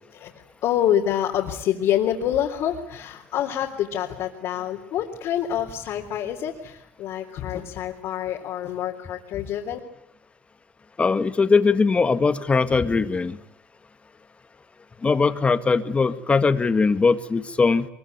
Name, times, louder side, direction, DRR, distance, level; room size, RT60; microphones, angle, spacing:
voice 1, 0.6-9.8, left 10 dB, 65° left, 0 dB, 3.6 m, -26 dB
voice 2, 11.0-13.4 15.0-17.9, left 4 dB, 25° left, 10 dB, 1.9 m, -20 dB
23.0 x 23.0 x 9.7 m, 0.74 s
supercardioid pair, 95°, 5 cm